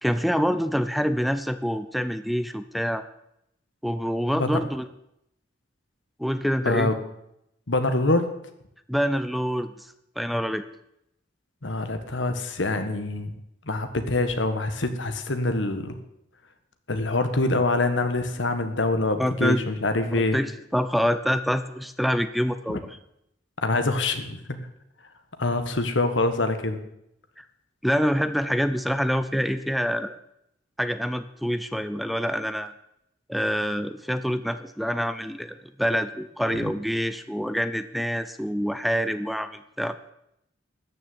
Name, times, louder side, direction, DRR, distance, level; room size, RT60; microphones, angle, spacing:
voice 1, 0.0-3.0 3.8-4.9 6.2-6.9 8.9-9.9 10.2-10.6 19.2-19.6 20.1-22.9 27.4-27.5 27.8-30.2 30.8-32.7 33.3-40.0, equal, ahead, 12 dB, 0.5 m, -26 dB
voice 2, 6.6-7.0 7.7-8.3 11.6-13.3 13.7-16.0 16.9-20.4 22.7-22.8 23.6-24.4 25.4-26.8 36.5-36.7, left 2 dB, 80° left, 8 dB, 1.6 m, -25 dB
13.5 x 6.7 x 9.4 m, 0.79 s
head